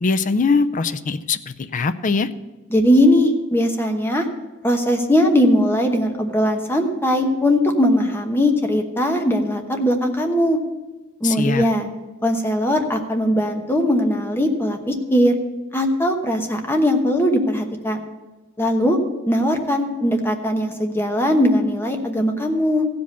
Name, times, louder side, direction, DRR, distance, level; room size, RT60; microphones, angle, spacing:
voice 1, 0.0-2.3 11.2-11.7, left 4 dB, 40° left, 11 dB, 0.5 m, -21 dB
voice 2, 2.7-4.3 4.6-10.6 11.2-11.9 12.2-15.3 15.7-18.0 18.6-19.0 19.3-22.9, equal, 10° left, 4 dB, 1.0 m, -19 dB
15.0 x 5.2 x 6.8 m, 1.2 s
head